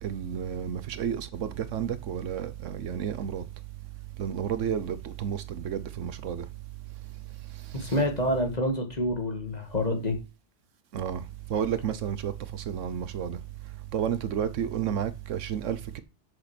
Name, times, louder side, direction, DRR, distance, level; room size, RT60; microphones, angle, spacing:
voice 1, 0.0-3.4 4.2-6.5 7.8-8.0 10.9-11.2 11.5-13.4 13.9-16.0, right 8 dB, 90° right, 1.2 m, -31 dB
voice 2, 7.7-10.2, left 1 dB, 35° left, 2.1 m, -27 dB
7.6 x 6.8 x 6.0 m
omnidirectional pair, 1.2 m